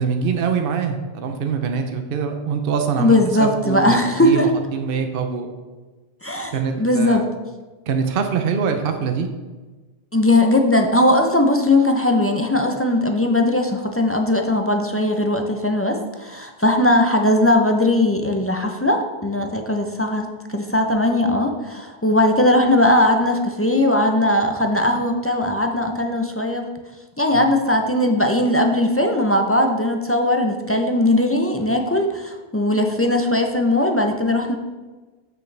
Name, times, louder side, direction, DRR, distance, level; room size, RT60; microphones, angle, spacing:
voice 1, 0.0-5.5 6.5-7.2 7.9-9.3 27.3-27.5, right 6 dB, 60° right, 5 dB, 0.8 m, -24 dB
voice 2, 3.0-4.5 6.2-7.3 10.1-26.6 27.2-34.6, left 1 dB, 20° left, 3 dB, 0.4 m, -19 dB
8.1 x 6.7 x 3.3 m, 1.3 s
omnidirectional pair, 1.1 m